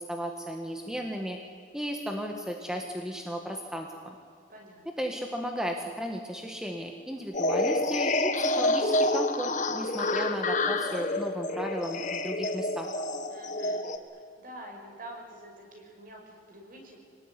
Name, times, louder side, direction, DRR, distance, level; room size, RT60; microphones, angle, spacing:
voice 1, 0.0-1.4 1.7-4.2 5.0-12.9, equal, 5° right, 2 dB, 1.7 m, -35 dB
voice 2, 4.5-4.8 13.3-13.9 14.4-17.1, right 1 dB, 45° right, 1 dB, 6.3 m, -47 dB
sound 1, 7.3-14.0, left 2 dB, 40° left, 1.6 m, -28 dB
26.0 x 19.0 x 9.9 m, 2.2 s
head